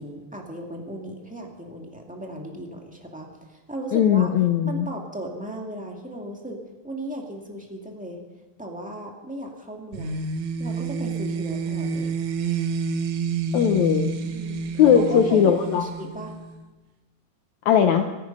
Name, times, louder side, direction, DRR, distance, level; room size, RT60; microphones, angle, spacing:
voice 1, 0.0-6.6 6.8-8.2 8.6-10.2 10.6-12.1 14.3-16.3, right 1 dB, 5° right, 0 dB, 1.3 m, -36 dB
voice 2, 3.9-4.9 13.5-14.1 14.8-15.9 17.7-18.1, left 8 dB, 70° left, 6 dB, 1.9 m, -19 dB
sound 1, 9.9-16.6, right 5 dB, 65° right, 2.3 m, -29 dB
26.0 x 10.0 x 5.4 m, 1.2 s
omnidirectional pair, 3.9 m